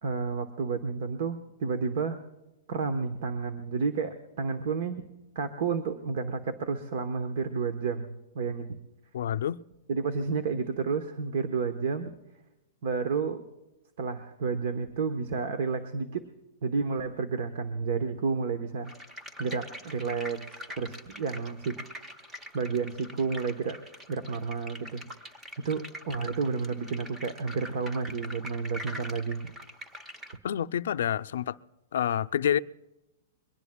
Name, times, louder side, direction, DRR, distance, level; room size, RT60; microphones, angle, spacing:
voice 1, 0.0-2.2 2.7-5.0 5.3-8.8 9.9-12.1 12.8-13.4 14.0-16.3 16.6-18.9 19.4-21.7 22.5-23.8 24.1-25.0 25.6-29.4, right 5 dB, 50° right, 1.1 m, -31 dB
voice 2, 9.1-9.6 30.4-31.6 31.9-32.6, left 9 dB, 65° left, 0.5 m, -28 dB
sound 1, 18.8-30.4, equal, 10° right, 0.7 m, -44 dB
22.5 x 18.0 x 2.3 m
hypercardioid pair, 170°, 0 cm